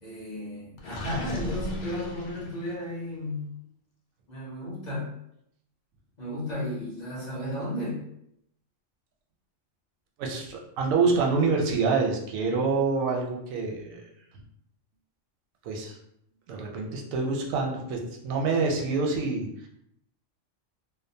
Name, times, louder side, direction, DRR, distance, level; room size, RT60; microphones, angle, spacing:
voice 1, 0.0-3.5 4.3-5.1 6.2-8.0, left 1 dB, 40° left, -6 dB, 0.8 m, -34 dB
Gurgling, 0.8-2.9, left 1 dB, 70° left, 0.4 m, -36 dB
voice 2, 10.2-14.0 15.6-16.0 16.5-19.7, right 4 dB, 85° right, 1 dB, 1.0 m, -26 dB
2.7 x 2.0 x 2.6 m, 0.75 s
omnidirectional pair, 1.4 m